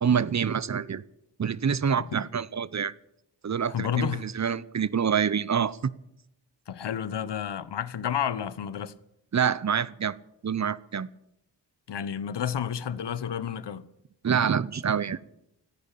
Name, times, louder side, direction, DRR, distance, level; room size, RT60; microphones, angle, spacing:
voice 1, 0.0-1.0 1.4-2.9 3.4-5.9 9.3-10.2 10.4-11.1 14.2-15.2, right 7 dB, 40° right, 0.8 m, -26 dB
voice 2, 3.7-4.3 6.7-8.9 11.9-13.9, left 8 dB, 70° left, 1.0 m, -30 dB
15.0 x 10.0 x 8.5 m
cardioid pair, 45°, 43 cm